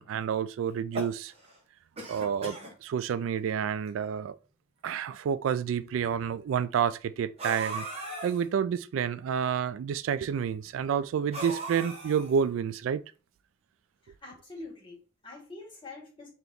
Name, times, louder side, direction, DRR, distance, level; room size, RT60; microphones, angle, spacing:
voice 1, 0.0-1.3 2.1-4.4 4.8-7.9 8.2-13.0, right 7 dB, 90° right, 0.3 m, -29 dB
sound 1, 0.7-1.6 2.0-2.7 3.5-3.6 3.9-4.0 4.9-5.0 7.4-8.4 11.3-12.5, right 2 dB, 30° right, 1.1 m, -38 dB
voice 2, 14.0-16.3, left 2 dB, 25° left, 1.6 m, -45 dB
3.4 x 2.9 x 3.8 m
head